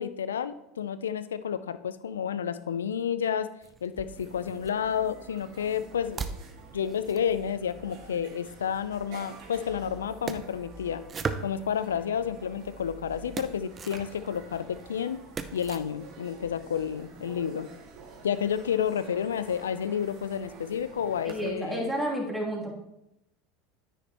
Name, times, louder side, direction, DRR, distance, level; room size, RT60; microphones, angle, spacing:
voice 1, 0.0-3.5 3.8-6.2 6.7-11.0 11.4-15.2 15.5-17.7 18.2-21.9, left 8 dB, 85° left, 13 dB, 0.5 m, -30 dB
sound 1, 3.6-4.7 5.4-8.4 9.3-12.0 12.5-15.8, right 5 dB, 30° right, 0.7 m, -41 dB
sound 2, 3.7-3.8 4.0-21.5, right 4 dB, 60° right, 2.0 m, -49 dB
voice 2, 21.2-22.7, right 1 dB, 10° right, -3 dB, 2.9 m, -31 dB
9.9 x 9.3 x 3.0 m, 0.84 s
hypercardioid pair, 80°, 0 cm